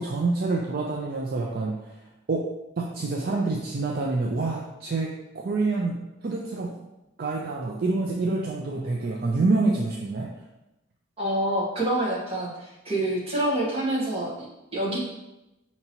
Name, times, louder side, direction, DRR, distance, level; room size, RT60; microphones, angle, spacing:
voice 1, 0.0-2.0 2.3-2.5 2.8-6.0 6.2-6.7 7.2-10.3, right 3 dB, 50° right, -1 dB, 0.4 m, -27 dB
voice 2, 11.2-14.3 14.7-15.0, right 1 dB, 30° right, -6 dB, 1.3 m, -26 dB
5.5 x 2.9 x 2.9 m, 0.96 s
head